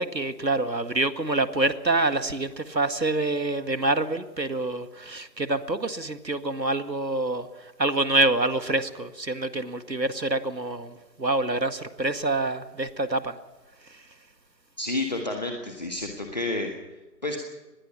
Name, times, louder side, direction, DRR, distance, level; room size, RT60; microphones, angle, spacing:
voice 1, 0.0-13.4 13.9-14.0, right 2 dB, 90° right, 11 dB, 1.9 m, -26 dB
voice 2, 14.8-16.7 17.2-17.4, left 2 dB, 25° left, 3 dB, 1.5 m, -30 dB
25.5 x 20.0 x 5.8 m, 1.1 s
figure-of-eight pair, 160°, 49 cm